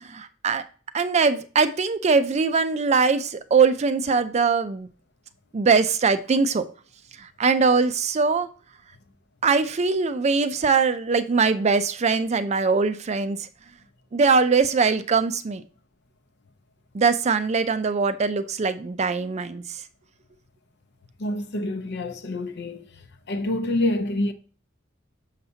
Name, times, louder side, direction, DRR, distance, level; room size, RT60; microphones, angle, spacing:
voice 1, 0.0-0.6 0.9-4.9 5.5-6.6 7.2-8.5 9.4-13.4 14.1-15.6 16.9-19.8, right 4 dB, 35° right, 0.4 m, -22 dB
voice 2, 21.2-22.9 23.3-24.3, left 1 dB, 60° left, 0.7 m, -27 dB
6.6 x 5.7 x 2.8 m
head